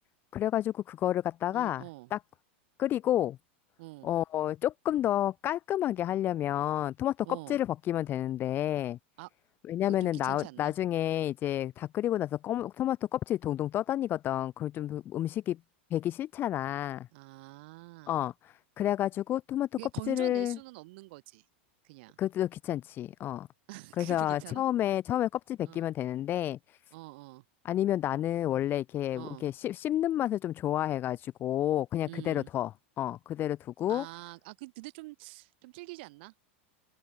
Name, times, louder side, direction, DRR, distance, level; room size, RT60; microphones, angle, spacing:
voice 1, 0.3-1.8 2.1-2.2 2.8-3.4 4.0-9.0 9.6-15.6 15.9-17.1 18.1-19.7 20.1-20.6 22.2-23.5 24.0-26.8 27.6-32.7 33.0-34.1, left 12 dB, 35° left, 0.8 m, -30 dB
voice 2, 1.5-2.1 3.8-4.1 7.2-7.6 9.2-9.3 10.0-10.7 17.1-18.2 19.8-21.4 21.8-22.2 23.7-24.6 25.6-25.8 26.9-27.4 29.1-29.5 32.1-32.5 33.9-36.3, right 23 dB, 60° right, 3.6 m, -45 dB
open air
supercardioid pair, 125°, 6 cm